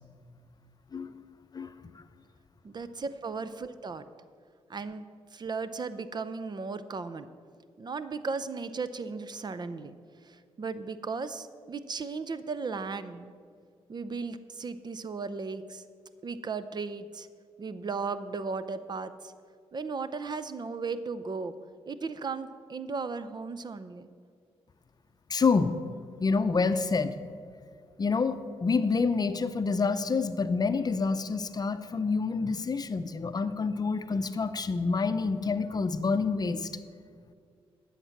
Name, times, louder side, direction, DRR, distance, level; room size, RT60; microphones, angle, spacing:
voice 1, 1.5-2.0 25.3-25.8 26.2-27.1 28.0-36.7, left 4 dB, 35° left, 11 dB, 0.6 m, -28 dB
voice 2, 2.6-4.0 4.7-5.0 5.3-7.3 7.8-10.0 10.2-13.3 13.9-15.8 16.2-17.3 17.6-19.3 19.7-21.5 21.9-24.1, right 4 dB, 40° right, 12 dB, 0.6 m, -36 dB
11.0 x 7.4 x 5.9 m, 2.2 s
cardioid pair, 65°, 11 cm